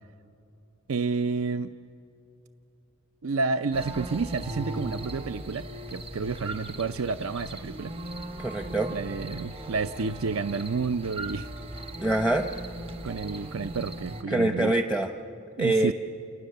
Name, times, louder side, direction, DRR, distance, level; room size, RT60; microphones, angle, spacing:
voice 1, 0.9-1.7 3.2-7.9 8.9-11.5 13.0-14.7 15.6-15.9, right 4 dB, 70° right, 11 dB, 0.6 m, -30 dB
sound 1, 3.7-14.2, right 1 dB, 25° right, 1.2 m, -39 dB
sound 2, 4.7-14.2, equal, 45° right, 4.1 m, -48 dB
voice 2, 8.4-8.9 12.0-12.5 14.3-15.1 15.6-15.9, right 2 dB, 5° right, 5 dB, 0.7 m, -24 dB
29.5 x 28.5 x 6.7 m, 2.8 s
head